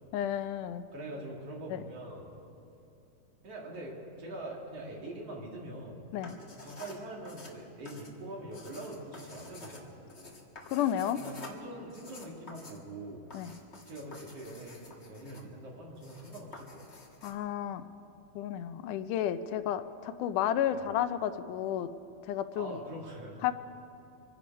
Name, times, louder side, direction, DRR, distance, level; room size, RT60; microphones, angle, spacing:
voice 1, 0.1-0.8 1.7-1.8 6.1-6.4 10.7-11.2 13.3-13.5 17.2-17.9 18.4-21.9 22.3-22.8 23.4-23.5, left 10 dB, 85° left, 11 dB, 2.2 m, -32 dB
voice 2, 0.9-2.3 3.4-6.0 6.3-10.1 11.2-13.3 13.9-16.9 20.7-20.8 22.6-23.5, right 1 dB, 55° right, -2 dB, 3.1 m, -43 dB
sound 1, 6.1-17.3, left 2 dB, 35° left, 1.0 m, -50 dB
26.0 x 10.5 x 5.3 m, 2.7 s
omnidirectional pair, 3.6 m